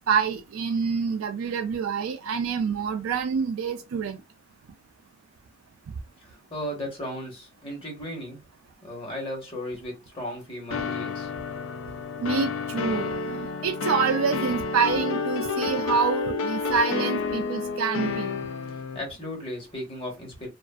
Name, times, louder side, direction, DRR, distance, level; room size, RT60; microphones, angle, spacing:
voice 1, 0.1-4.2 12.2-18.3, right 5 dB, 80° right, 0.3 m, -27 dB
voice 2, 6.2-8.4 8.8-11.3 18.9-20.5, left 1 dB, 25° left, 1.1 m, -35 dB
sound 1, 10.7-19.0, left 4 dB, 75° left, 0.4 m, -30 dB
2.4 x 2.3 x 2.3 m
head